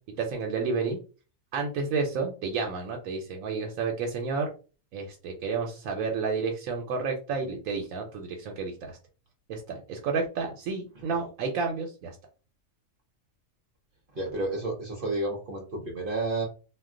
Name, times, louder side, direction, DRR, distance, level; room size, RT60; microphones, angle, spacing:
voice 1, 0.2-1.0 1.5-4.5 4.9-9.0 9.5-12.2, right 4 dB, 90° right, 1 dB, 1.0 m, -31 dB
voice 2, 14.1-16.4, right 2 dB, 50° right, 0 dB, 0.8 m, -31 dB
2.3 x 2.2 x 3.6 m, 0.36 s
omnidirectional pair, 1.4 m